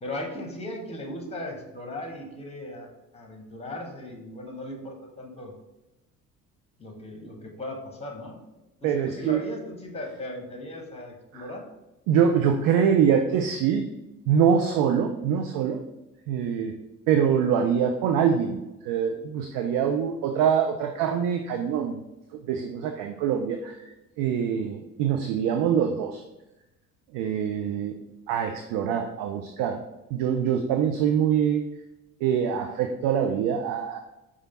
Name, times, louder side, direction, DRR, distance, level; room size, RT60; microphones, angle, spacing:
voice 1, 0.0-5.5 6.8-8.4 8.8-11.7 24.4-24.6, left 1 dB, 15° left, 2 dB, 1.1 m, -37 dB
voice 2, 8.8-9.4 11.3-11.4 12.1-13.8 14.3-15.8 16.3-16.7 17.1-18.6 18.8-22.0 22.3-23.8 24.2-26.2 27.1-28.0 28.3-29.8 30.1-31.6 32.2-34.0, right 8 dB, 45° right, 5 dB, 0.5 m, -24 dB
4.9 x 2.4 x 4.1 m, 0.97 s
figure-of-eight pair, 50°, 47 cm